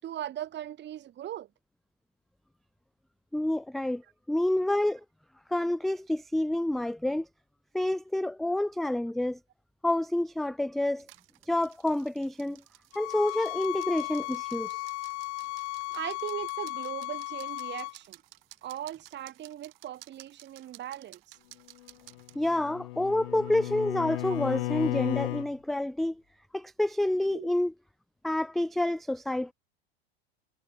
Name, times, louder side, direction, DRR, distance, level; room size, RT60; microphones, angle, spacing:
voice 1, 0.0-1.5 15.9-18.2 18.6-21.4 27.3-27.5, right 12 dB, 35° right, 6.3 m, -39 dB
voice 2, 3.3-4.0 4.3-5.0 5.5-7.3 7.7-9.4 9.8-11.1 11.5-12.6 13.0-14.8 22.4-26.2 26.5-27.7 28.2-29.5, left 1 dB, ahead, 0.3 m, -28 dB
sound 1, 11.0-22.4, right 18 dB, 65° right, 4.8 m, -55 dB
sound 2, 12.9-17.9, left 25 dB, 45° left, 1.3 m, -35 dB
Bowed string instrument, 22.1-25.5, left 18 dB, 65° left, 2.5 m, -34 dB
hypercardioid pair, 105°, 31 cm